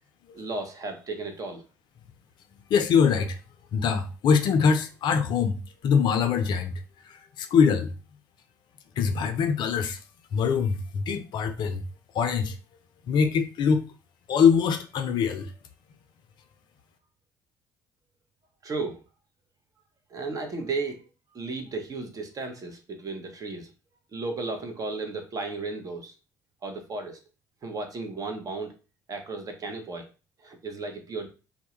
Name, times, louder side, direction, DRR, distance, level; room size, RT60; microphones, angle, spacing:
voice 1, 0.3-1.6 18.6-19.0 20.1-23.7 24.1-26.1 26.6-27.2 27.6-28.7 29.1-30.1 30.4-31.3, right 3 dB, 40° right, 0.7 m, -34 dB
voice 2, 2.7-3.4 3.7-5.6 5.8-6.7 7.1-7.9 9.0-10.0 10.3-11.8 12.1-12.5 13.1-13.8 14.3-15.5, left 6 dB, 55° left, 0.4 m, -23 dB
2.1 x 2.0 x 2.9 m
hypercardioid pair, 50°, 9 cm